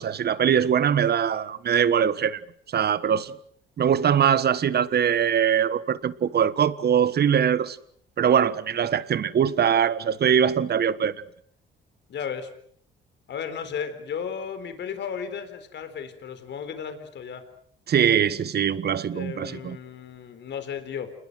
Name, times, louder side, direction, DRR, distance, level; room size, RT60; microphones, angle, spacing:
voice 1, 0.0-2.4 2.7-3.3 3.8-7.8 8.2-11.2 17.9-19.8, right 8 dB, 55° right, 1.5 m, -22 dB
voice 2, 12.1-12.5 13.3-17.5 19.1-21.1, left 7 dB, 65° left, 4.1 m, -34 dB
28.5 x 21.0 x 7.7 m
cardioid pair, 90°, 20 cm